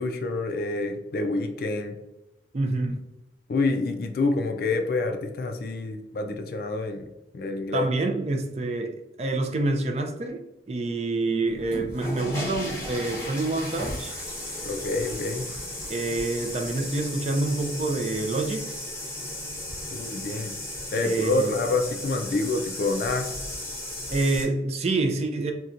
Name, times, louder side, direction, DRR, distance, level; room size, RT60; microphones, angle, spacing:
voice 1, 0.0-2.0 3.5-7.1 7.3-7.9 14.6-15.4 19.9-20.6 20.9-23.4, left 3 dB, 55° left, 5 dB, 0.3 m, -27 dB
voice 2, 2.5-3.0 7.7-14.2 15.9-18.8 20.9-21.6 24.1-25.5, right 2 dB, 35° right, 4 dB, 0.4 m, -27 dB
sound 1, 11.5-24.4, left 1 dB, 15° left, 0.8 m, -35 dB
4.1 x 2.2 x 2.4 m, 0.97 s
head